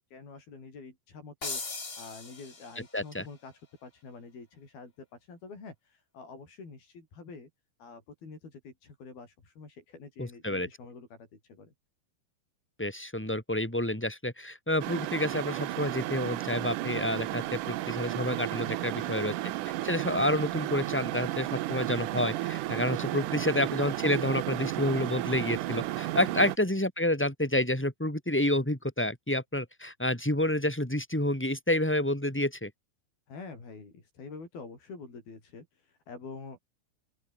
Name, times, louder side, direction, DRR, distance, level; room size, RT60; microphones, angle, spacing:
voice 1, 0.0-1.6 2.0-7.5 7.8-11.7 18.8-19.3 23.1-23.8 26.3-26.5 33.3-36.6, left 4 dB, 80° left, 9.5 m, -47 dB
sound 1, 1.4-3.0, left 3 dB, 20° left, 1.7 m, -39 dB
voice 2, 2.9-3.2 10.2-10.7 12.8-19.3 19.8-32.7, left 1 dB, 5° left, 5.6 m, -29 dB
sound 2, 14.8-26.6, right 16 dB, 75° right, 2.1 m, -33 dB
open air
omnidirectional pair, 4.3 m